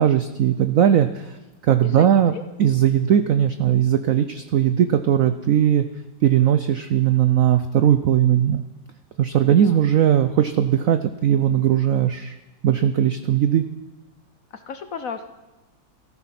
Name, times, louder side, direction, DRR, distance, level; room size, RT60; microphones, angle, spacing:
voice 1, 0.0-1.4 1.6-2.3 2.6-5.8 6.2-8.6 9.2-12.4 12.6-13.6, right 10 dB, 80° right, 10 dB, 0.7 m, -18 dB
voice 2, 1.8-2.4 9.6-9.8 14.5-15.3, left 6 dB, 60° left, 8 dB, 0.9 m, -35 dB
15.0 x 14.0 x 5.8 m, 1.1 s
omnidirectional pair, 2.1 m